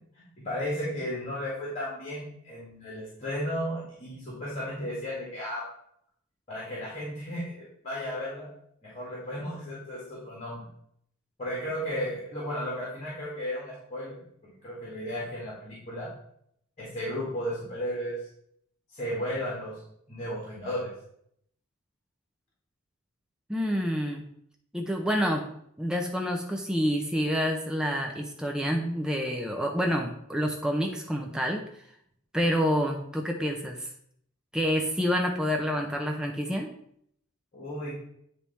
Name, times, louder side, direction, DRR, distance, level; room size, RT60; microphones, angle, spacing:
voice 1, 0.1-5.6 6.5-8.5 8.8-10.7 11.4-16.1 16.8-18.2 18.9-19.8 20.1-20.9 37.5-37.9, equal, 35° left, -5 dB, 2.0 m, -34 dB
voice 2, 23.5-24.2 24.7-25.5 25.8-31.6 32.3-33.9 34.5-36.7, equal, 5° right, 1 dB, 0.5 m, -28 dB
8.9 x 3.5 x 4.1 m, 0.69 s
head